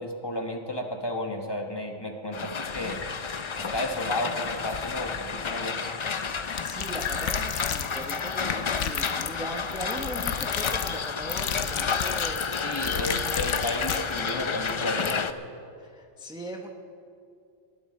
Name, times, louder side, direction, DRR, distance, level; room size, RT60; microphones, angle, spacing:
voice 1, 0.0-3.0 3.5-5.8 12.6-15.2, left 1 dB, 20° left, 3 dB, 1.1 m, -33 dB
sound 1, 2.3-15.3, left 5 dB, 50° left, 0.3 m, -31 dB
sound 2, 2.6-7.6, left 5 dB, 70° left, 1.4 m, -41 dB
sound 3, 6.6-14.3 14.7-14.8 15.1-15.2, left 8 dB, 90° left, 1.0 m, -33 dB
voice 2, 6.6-12.5 12.8-13.5 15.8-16.7, right 1 dB, 5° right, 2 dB, 0.7 m, -39 dB
19.5 x 13.5 x 4.2 m, 2.5 s
omnidirectional pair, 1.2 m